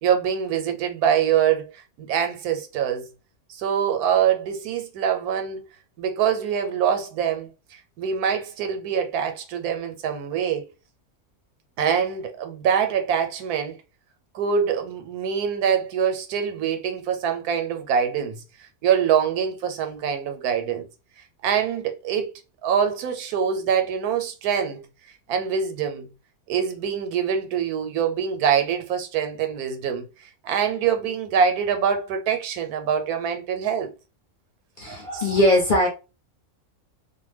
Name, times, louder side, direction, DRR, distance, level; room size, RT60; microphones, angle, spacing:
voice 1, 0.0-3.0 3.5-5.6 6.0-10.6 11.8-13.8 14.3-18.4 18.8-20.9 21.4-22.3 22.6-24.8 25.3-26.1 26.5-30.1 30.4-33.9 35.1-35.2, right 7 dB, 85° right, 1.1 m, -24 dB
voice 2, 34.8-35.9, left 1 dB, 45° left, 0.7 m, -20 dB
2.5 x 2.2 x 3.2 m
omnidirectional pair, 1.6 m